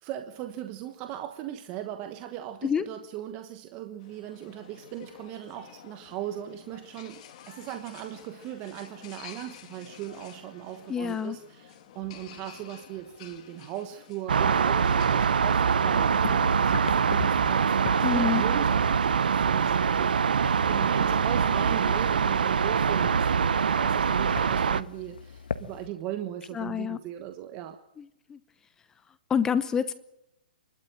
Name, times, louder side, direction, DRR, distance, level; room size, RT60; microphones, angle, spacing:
voice 1, 0.0-7.2 7.5-20.2 20.7-27.8, right 12 dB, 30° right, 8 dB, 1.2 m, -38 dB
sound 1, 4.0-16.1, left 9 dB, 45° left, 2.6 m, -50 dB
voice 2, 10.9-11.4 18.0-18.4 26.5-27.0 28.0-28.4 29.3-29.9, left 7 dB, 10° left, 14 dB, 0.8 m, -27 dB
sound 2, 14.3-24.8, right 6 dB, 85° right, 0.9 m, -24 dB
sound 3, 15.8-25.9, left 6 dB, 85° left, 1.4 m, -40 dB
28.0 x 12.5 x 8.8 m, 0.83 s
hypercardioid pair, 150°, 5 cm